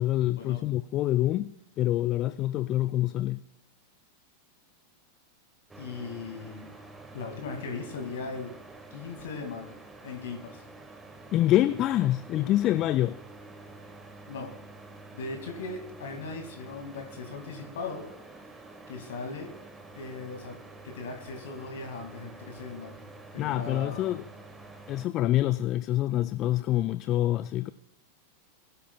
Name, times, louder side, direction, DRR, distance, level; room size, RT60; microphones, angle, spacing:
voice 1, 0.0-3.4 11.3-13.2 23.4-24.2 24.9-27.7, left 14 dB, 35° left, 0.3 m, -26 dB
sound 1, 5.7-25.1, right 2 dB, 10° right, 1.2 m, -48 dB
voice 2, 5.8-6.7 7.1-8.5 8.9-10.6 14.3-14.5 15.1-18.0 18.3-18.4 18.9-19.5 20.0-20.5 20.8-23.0 23.3-24.2, left 4 dB, 60° left, 2.1 m, -38 dB
20.5 x 11.5 x 2.3 m
figure-of-eight pair, 90°, 0 cm